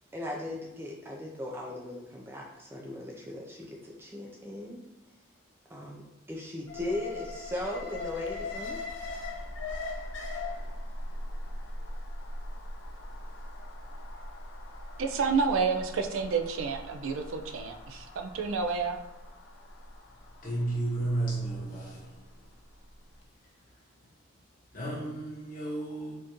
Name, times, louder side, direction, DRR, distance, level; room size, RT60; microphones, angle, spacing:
voice 1, 0.1-4.8 5.7-8.8, left 1 dB, 10° right, 0.4 m, -38 dB
Alarm, 6.7-22.8 23.1-23.2, left 2 dB, 60° left, 0.5 m, -40 dB
voice 2, 15.0-19.0, right 5 dB, 80° right, 0.4 m, -29 dB
voice 3, 20.4-22.1 24.7-26.1, right 2 dB, 40° left, 1.3 m, -32 dB
4.3 x 2.6 x 3.0 m
head